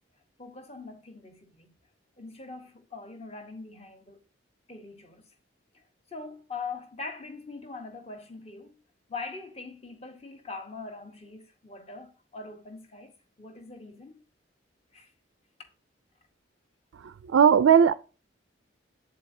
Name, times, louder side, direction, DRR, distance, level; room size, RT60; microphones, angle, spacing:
voice 1, 0.4-1.7 2.2-4.2 4.7-5.4 5.7-8.8 9.1-14.2 14.9-15.1 15.6-15.7, left 4 dB, 30° left, 1.0 m, -42 dB
voice 2, 17.0-17.9, right 7 dB, 80° right, 0.3 m, -19 dB
7.8 x 7.7 x 2.7 m
head